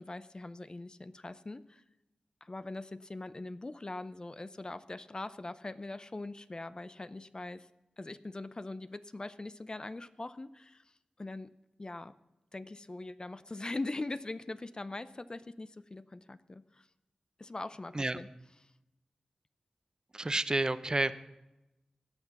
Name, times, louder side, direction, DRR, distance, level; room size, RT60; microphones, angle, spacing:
voice 1, 0.0-1.8 2.4-7.7 8.0-10.8 11.2-11.5 11.8-12.1 12.5-16.9 17.4-18.3 18.6-18.7, left 2 dB, 35° left, 14 dB, 0.6 m, -42 dB
voice 2, 20.1-21.1, right 2 dB, 30° right, 14 dB, 0.6 m, -30 dB
17.0 x 5.9 x 7.0 m, 0.96 s
cardioid pair, 40°, 2 cm